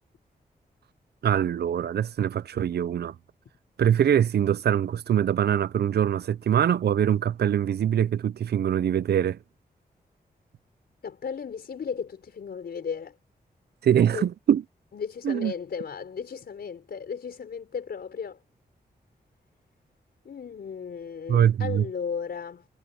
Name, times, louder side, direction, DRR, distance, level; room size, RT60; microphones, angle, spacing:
voice 1, 1.2-3.1 3.8-9.4 13.8-14.6 15.2-15.5 21.3-21.8, right 9 dB, 85° right, 0.6 m, -23 dB
voice 2, 11.0-13.2 14.1-14.2 14.9-18.4 20.2-22.7, left 6 dB, 75° left, 4.6 m, -35 dB
wide cardioid pair, 105°, 16 cm